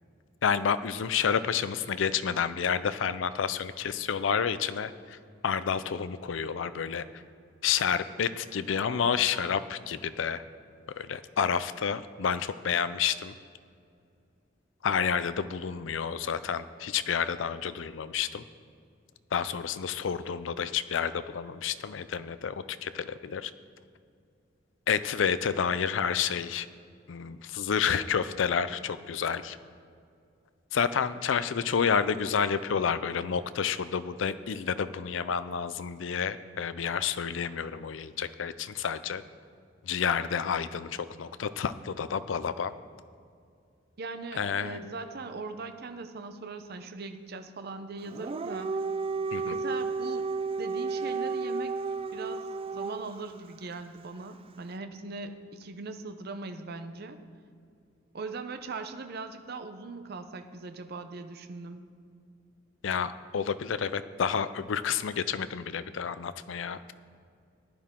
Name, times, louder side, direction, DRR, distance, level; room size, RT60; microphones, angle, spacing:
voice 1, 0.4-5.2 5.4-7.0 7.6-10.4 11.0-13.3 14.8-18.4 19.3-23.5 24.9-26.7 27.1-29.6 30.7-39.2 39.8-42.7 44.4-44.8 49.3-49.6 62.8-66.9, left 7 dB, 80° left, 13 dB, 0.5 m, -29 dB
voice 2, 44.0-48.8 49.5-50.3 50.6-51.7 52.1-52.5 52.7-57.2 58.1-61.8, right 3 dB, 55° right, 8 dB, 0.7 m, -40 dB
Dog, 48.1-53.2, right 4 dB, 30° right, 0.3 m, -32 dB
15.0 x 10.5 x 3.7 m, 2.4 s
head